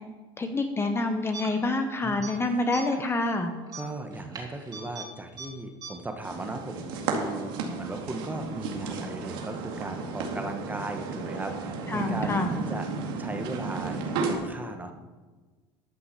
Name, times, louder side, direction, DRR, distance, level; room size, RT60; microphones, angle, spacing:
voice 1, 0.4-3.5 11.9-12.5, left 2 dB, 20° left, 6 dB, 0.9 m, -27 dB
sound 1, 1.3-1.8 2.1-2.4 2.7-3.1 3.7-5.1 5.4-5.5 5.8-5.9, right 4 dB, 35° right, 3.1 m, -40 dB
voice 2, 3.7-12.8 13.2-14.9, right 2 dB, 15° right, 5 dB, 1.2 m, -37 dB
sound 2, 6.2-14.3, right 4 dB, 80° right, 2.2 m, -33 dB
12.5 x 6.0 x 6.8 m, 1.3 s
supercardioid pair, 115°, 12 cm